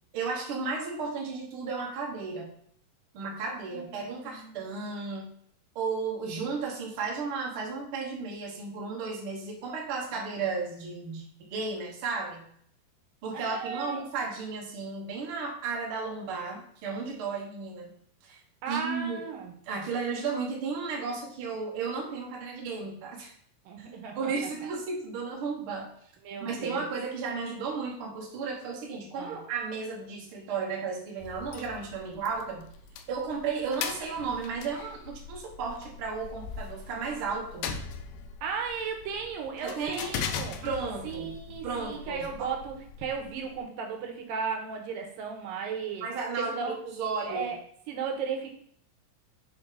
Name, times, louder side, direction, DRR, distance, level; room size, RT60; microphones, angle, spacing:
voice 1, 0.1-2.5 3.1-5.3 5.7-11.2 11.5-12.4 13.2-17.9 18.2-18.4 18.7-19.2 19.7-23.3 24.1-25.9 26.4-32.7 33.1-37.7 39.6-40.1 40.6-41.4 41.6-42.5 46.0-47.5, right 4 dB, 60° right, -1 dB, 1.5 m, -34 dB
voice 2, 3.7-4.6 13.3-14.0 18.6-19.5 23.7-24.3 26.2-26.9 29.2-29.4 32.1-32.2 38.4-40.6 41.0-46.1 46.4-46.8 47.3-47.6 47.9-48.5, right 6 dB, 80° right, 2 dB, 2.5 m, -35 dB
sound 1, 31.2-43.6, left 6 dB, 80° left, 2.2 m, -40 dB
6.6 x 4.0 x 3.7 m, 0.63 s
omnidirectional pair, 3.9 m